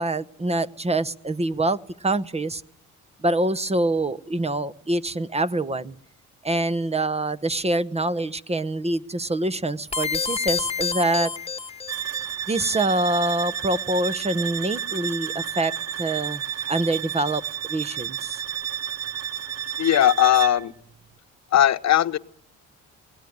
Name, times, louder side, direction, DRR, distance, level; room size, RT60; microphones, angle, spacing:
voice 1, 0.0-2.6 3.2-5.9 6.4-11.3 12.5-16.4 16.7-17.4 17.7-18.4, right 2 dB, 20° right, 15 dB, 1.0 m, -25 dB
sound 1, 9.9-12.2, left 5 dB, 20° left, 1.4 m, -28 dB
sound 2, 11.9-20.7, right 9 dB, 60° right, 1.1 m, -31 dB
voice 2, 19.8-20.7 21.5-22.2, left 11 dB, 60° left, 12 dB, 1.0 m, -18 dB
20.5 x 18.5 x 9.4 m, 0.64 s
cardioid pair, 90°, 30 cm